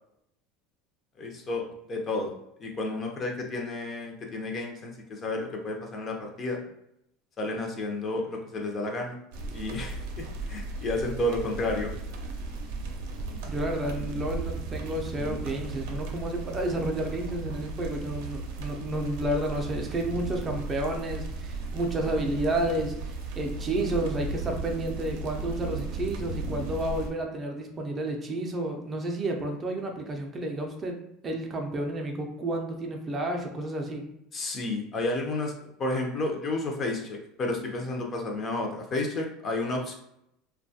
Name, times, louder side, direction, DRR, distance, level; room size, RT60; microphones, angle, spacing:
voice 1, 1.2-1.6 1.9-2.3 2.6-6.6 7.4-9.2 9.5-11.9 34.3-35.5 35.8-39.9, left 2 dB, 30° left, 1 dB, 0.5 m, -31 dB
sound 1, 9.3-27.1, right 3 dB, 75° right, 0.5 m, -36 dB
voice 2, 13.4-31.0 31.2-34.0, right 1 dB, 25° right, 2 dB, 0.4 m, -31 dB
2.6 x 2.2 x 2.7 m, 0.79 s
supercardioid pair, 130°, 0 cm